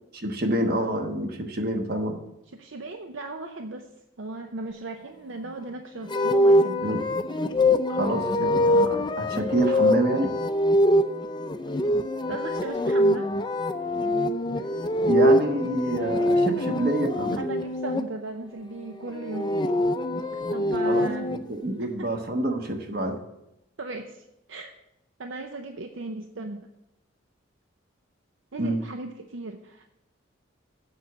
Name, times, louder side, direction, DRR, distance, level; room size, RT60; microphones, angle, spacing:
voice 1, 0.2-2.2 6.8-7.0 7.9-10.3 15.0-17.4 20.8-23.2 28.6-28.8, right 1 dB, 50° right, 4 dB, 1.2 m, -27 dB
voice 2, 2.5-3.9 4.2-6.9 12.3-13.3 17.3-19.7 20.5-21.3 21.8-22.1 23.8-24.7 25.2-26.7 28.5-29.9, right 2 dB, 70° right, 5 dB, 0.6 m, -36 dB
sound 1, 6.1-18.0 19.1-21.4, left 1 dB, 20° left, 0.5 m, -24 dB
7.9 x 6.0 x 8.0 m, 0.87 s
head